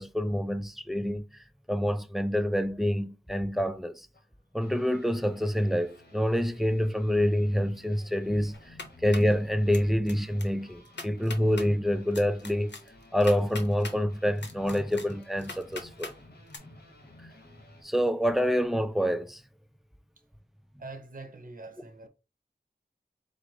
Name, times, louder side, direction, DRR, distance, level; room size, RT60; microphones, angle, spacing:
voice 1, 0.0-4.1 4.5-12.7 13.1-16.1 16.7-16.8 17.8-19.4, equal, ahead, 0.4 m, -27 dB
sound 1, 4.1-17.8, left 2 dB, 65° left, 1.1 m, -54 dB
sound 2, 8.5-9.3 9.7-10.1 10.4-10.5 10.8-11.7 12.1-14.0 14.4-16.1 16.5-16.6, left 3 dB, 85° left, 0.7 m, -41 dB
voice 2, 20.8-22.1, right 3 dB, 50° right, 0.7 m, -44 dB
4.5 x 2.0 x 3.7 m
wide cardioid pair, 45°, 18 cm